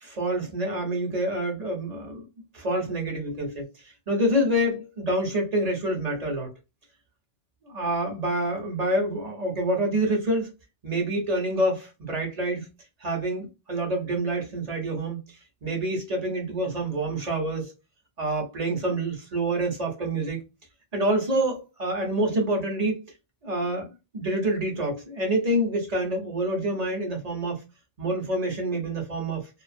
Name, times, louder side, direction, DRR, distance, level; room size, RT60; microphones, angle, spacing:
voice 1, 0.0-2.3 2.5-3.7 4.1-6.5 7.7-10.5 10.8-12.7 13.0-15.2 15.6-17.7 18.2-20.4 20.9-23.0 23.4-27.6 28.0-29.5, right 1 dB, 40° right, 0.9 m, -27 dB
2.4 x 2.4 x 2.5 m
omnidirectional pair, 1.1 m